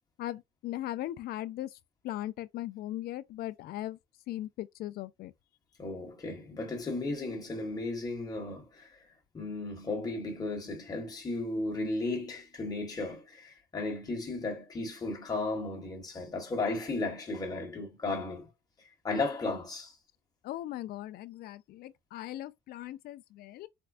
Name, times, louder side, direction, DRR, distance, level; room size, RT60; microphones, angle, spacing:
voice 1, 0.2-1.8 2.0-4.0 4.3-5.3 20.4-23.7, left 14 dB, 65° left, 0.4 m, -38 dB
voice 2, 5.8-9.1 9.3-18.5 19.0-20.0, left 2 dB, 20° left, 1.2 m, -35 dB
4.4 x 2.1 x 2.5 m
cardioid pair, 110°, 17 cm